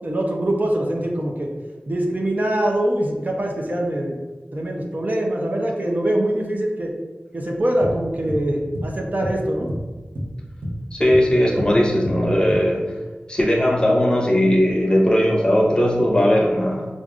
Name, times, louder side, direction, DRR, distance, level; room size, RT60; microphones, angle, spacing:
voice 1, 0.0-1.5 1.9-4.2 4.5-6.9 7.3-9.7, right 1 dB, 45° right, 0 dB, 0.6 m, -23 dB
sound 1, 7.8-8.5 8.7-9.0 9.2-10.4 10.6-11.8 12.0-12.5, equal, 90° right, 0.8 m, -29 dB
voice 2, 10.9-12.8 13.3-16.9, equal, 25° left, -2 dB, 0.8 m, -18 dB
4.9 x 2.5 x 2.4 m, 1.3 s
wide cardioid pair, 45°, 4 cm